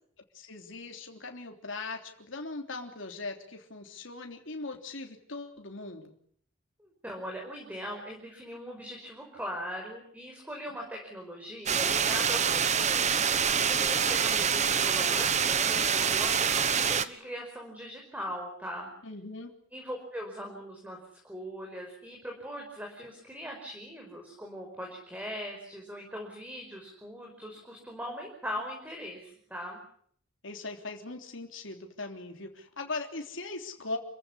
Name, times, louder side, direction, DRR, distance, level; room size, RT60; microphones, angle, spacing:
voice 1, 0.3-6.1 14.0-14.2 19.0-19.5 30.4-34.0, left 3 dB, 65° left, 3 dB, 3.4 m, -40 dB
voice 2, 6.8-13.3 13.7-18.9 19.7-21.0 21.2-29.8, equal, 5° right, 1 dB, 5.2 m, -40 dB
sound 1, 11.7-17.0, right 7 dB, 35° right, 1.1 m, -26 dB
29.0 x 15.5 x 9.9 m, 0.64 s
head